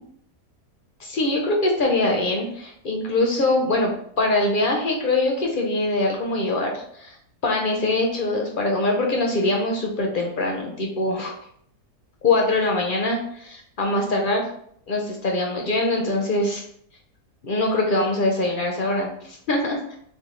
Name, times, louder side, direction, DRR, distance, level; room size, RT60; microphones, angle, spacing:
voice 1, 1.0-3.9 4.2-7.2 7.4-11.3 12.2-14.4 14.9-16.6 17.4-20.0, left 2 dB, 55° left, 1 dB, 0.5 m, -23 dB
6.5 x 2.2 x 3.1 m, 0.67 s
omnidirectional pair, 1.7 m